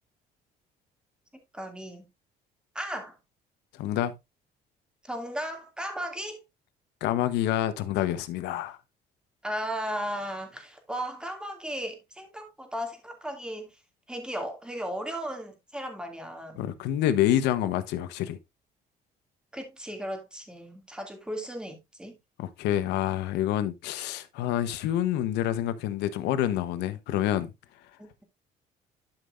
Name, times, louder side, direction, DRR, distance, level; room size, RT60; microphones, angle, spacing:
voice 1, 1.5-2.1 2.7-3.2 5.0-6.4 9.4-13.8 14.1-16.7 19.5-22.2 28.0-28.2, equal, 5° right, 2.5 m, -36 dB
voice 2, 3.7-4.1 7.0-8.8 16.5-18.4 22.4-27.9, left 12 dB, 90° left, 1.1 m, -27 dB
12.0 x 5.7 x 2.6 m
cardioid pair, 110°, 17 cm